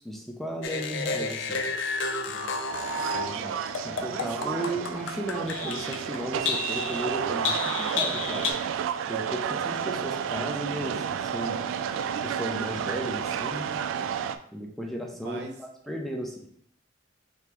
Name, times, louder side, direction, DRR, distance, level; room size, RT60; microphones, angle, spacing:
voice 1, 0.0-1.6 3.9-8.5 9.1-11.6 12.2-13.7 14.5-16.5, right 1 dB, ahead, 0 dB, 0.4 m, -35 dB
sound 1, 0.6-3.3 3.7-6.2 6.4-8.5, left 4 dB, 75° left, 0.5 m, -31 dB
voice 2, 2.3-4.8 9.0-9.4 15.2-15.5, right 2 dB, 55° right, 2 dB, 0.7 m, -40 dB
sound 2, 2.7-14.4, right 8 dB, 85° right, 0.3 m, -31 dB
5.0 x 3.4 x 2.9 m, 0.65 s
head